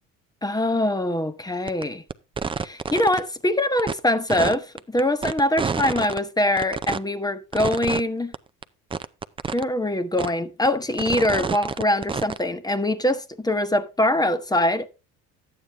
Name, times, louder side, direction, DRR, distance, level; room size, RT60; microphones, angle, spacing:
voice 1, 0.4-2.0 2.6-8.3 9.5-14.9, left 1 dB, 10° left, 1.1 m, -23 dB
sound 1, 1.7-1.8 2.1-3.2 3.8-3.9 4.3-6.2 6.6-7.0 7.5-8.0 8.3-8.4 8.6-8.7 8.9-9.6 10.2-10.3 10.7-12.4, right 5 dB, 15° right, 0.5 m, -28 dB
11.5 x 8.7 x 3.5 m
supercardioid pair, 90°, 36 cm